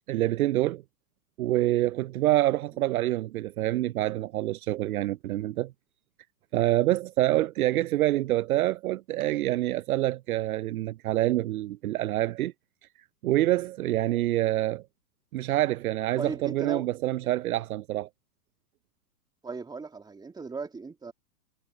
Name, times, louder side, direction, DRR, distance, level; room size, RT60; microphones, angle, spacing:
voice 1, 0.1-0.8 1.4-5.7 6.5-12.5 13.2-14.8 15.3-18.1, right 15 dB, 65° right, 0.6 m, -26 dB
voice 2, 16.2-16.9 19.4-21.1, right 4 dB, 10° right, 2.3 m, -37 dB
hypercardioid pair, 125°, 47 cm